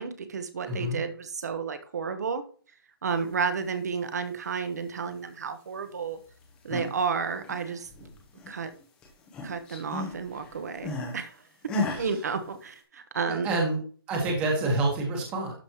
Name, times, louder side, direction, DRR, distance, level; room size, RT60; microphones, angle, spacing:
voice 1, 0.0-2.4 3.0-6.2 6.6-7.9 8.5-8.7 9.4-11.7 12.0-13.5, right 5 dB, 45° right, 10 dB, 1.2 m, -32 dB
voice 2, 0.6-1.0 11.9-12.1 13.3-13.8 14.1-15.5, right 2 dB, 10° right, 0 dB, 1.4 m, -27 dB
sound 1, 6.4-7.0 7.3-8.7 9.0-11.2 11.7-12.1, left 2 dB, 5° left, 0.9 m, -34 dB
12.5 x 5.3 x 3.0 m, 0.42 s
hypercardioid pair, 180°, 13 cm